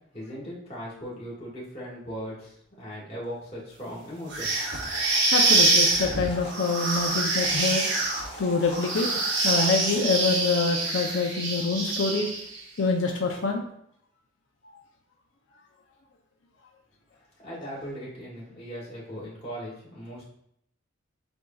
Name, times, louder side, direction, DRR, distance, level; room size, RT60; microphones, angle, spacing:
voice 1, 0.1-4.7 17.4-20.2, equal, 30° left, -6 dB, 1.8 m, -38 dB
sound 1, 4.3-12.6, right 2 dB, 70° right, 1.1 m, -25 dB
sound 2, 4.5-10.2, left 1 dB, 60° left, 1.5 m, -43 dB
voice 2, 5.3-7.9 8.4-12.3 12.8-13.6, left 4 dB, 85° left, 1 dB, 0.6 m, -26 dB
7.8 x 2.7 x 2.3 m, 0.71 s
head